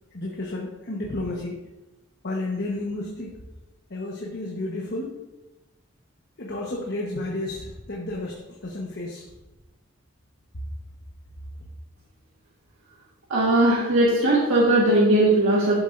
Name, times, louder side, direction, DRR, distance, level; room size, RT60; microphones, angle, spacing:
voice 1, 0.1-1.5 2.2-3.4 3.9-5.2 6.4-9.3, left 2 dB, 55° left, -2 dB, 1.2 m, -31 dB
voice 2, 13.3-15.8, right 1 dB, 75° right, -5 dB, 1.7 m, -19 dB
12.0 x 7.2 x 2.6 m, 1.1 s
head